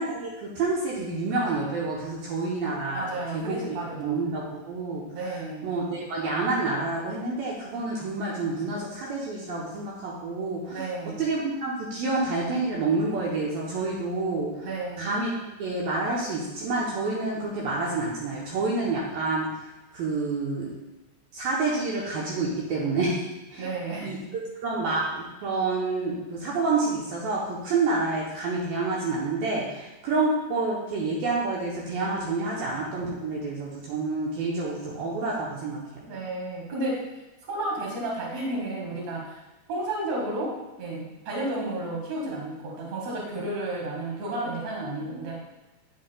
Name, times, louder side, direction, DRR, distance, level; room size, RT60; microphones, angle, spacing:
voice 1, 0.0-5.0 5.3-10.9 11.2-14.5 15.0-15.3 15.6-19.5 19.9-20.7 21.3-23.2 23.5-23.6 24.0-24.2 24.6-35.8, right 3 dB, 70° right, -4 dB, 2.3 m, -28 dB
voice 2, 2.9-4.3 5.1-5.7 10.7-11.2 14.6-15.1 23.6-24.2 36.1-37.1 37.5-39.4 39.7-45.4, right 2 dB, 50° right, -3 dB, 2.4 m, -32 dB
9.1 x 7.7 x 2.3 m, 1.1 s
omnidirectional pair, 5.1 m